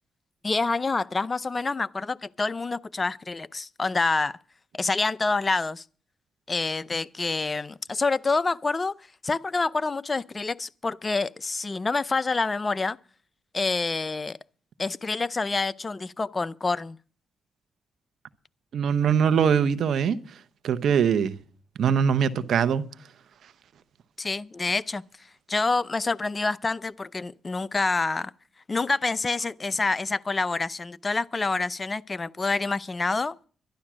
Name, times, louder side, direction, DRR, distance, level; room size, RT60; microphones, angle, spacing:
voice 1, 0.4-4.3 4.7-5.8 6.5-8.9 9.2-13.0 13.5-14.4 14.8-17.0 24.2-25.0 25.5-28.3 28.7-33.4, left 3 dB, 30° left, 0.5 m, -27 dB
voice 2, 18.7-20.2 20.6-21.4 21.8-22.8, right 7 dB, 70° right, 1.0 m, -22 dB
11.5 x 11.5 x 6.2 m
cardioid pair, 70°, 0 cm